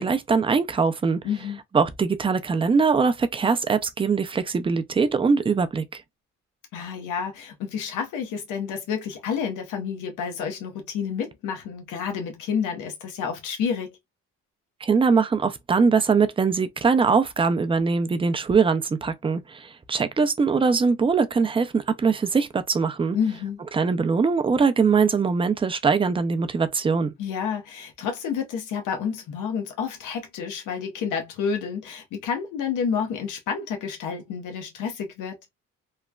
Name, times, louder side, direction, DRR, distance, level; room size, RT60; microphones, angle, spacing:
voice 1, 0.0-1.2 1.7-5.8 14.8-23.2 23.7-27.1, right 5 dB, 20° right, 0.4 m, -22 dB
voice 2, 1.2-1.6 6.7-14.0 23.1-23.6 27.2-35.4, left 6 dB, 90° left, 0.9 m, -29 dB
3.1 x 2.1 x 2.3 m
cardioid pair, 90°, 30 cm